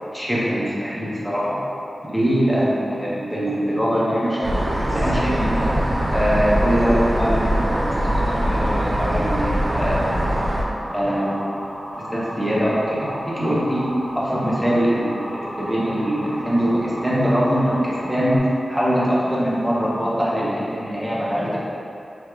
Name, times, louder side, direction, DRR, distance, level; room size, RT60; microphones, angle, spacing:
voice 1, 0.1-1.6 2.1-5.8 6.1-10.2 10.9-11.4 11.9-13.9 14.1-18.4 18.7-21.6, equal, ahead, -8 dB, 0.8 m, -22 dB
sound 1, 4.4-10.6, right 1 dB, 30° right, 0.4 m, -22 dB
Motor vehicle (road) / Siren, 9.8-18.4, equal, 50° right, 0.7 m, -34 dB
4.6 x 3.5 x 2.3 m, 2.8 s
wide cardioid pair, 105°, 0 cm